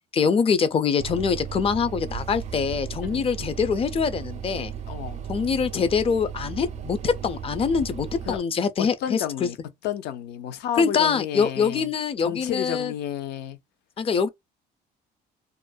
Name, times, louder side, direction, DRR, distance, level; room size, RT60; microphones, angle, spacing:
voice 1, 0.1-4.7 5.3-9.5 10.8-12.9 14.0-14.3, left 6 dB, 35° left, 0.4 m, -24 dB
sound 1, 1.0-8.4, right 8 dB, 45° right, 0.4 m, -35 dB
voice 2, 4.9-5.2 8.3-8.4 8.8-9.6 9.8-11.9 12.2-13.6, left 10 dB, 80° left, 0.6 m, -31 dB
2.5 x 2.1 x 2.3 m
cardioid pair, 110°, 17 cm